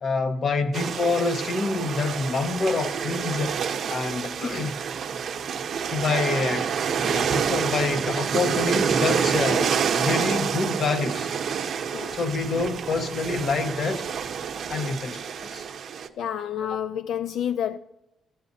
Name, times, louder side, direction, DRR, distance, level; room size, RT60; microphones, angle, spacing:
voice 1, 0.0-3.6 3.9-4.8 5.9-6.7 7.0-9.7 9.9-11.3 12.1-14.1 14.7-15.6, left 3 dB, 50° left, 1.1 m, -27 dB
sound 1, 0.7-16.1, right 7 dB, 55° right, 0.8 m, -28 dB
voice 2, 16.2-17.8, left 9 dB, 75° left, 0.3 m, -29 dB
14.0 x 7.2 x 2.7 m
cardioid pair, 90°, 0 cm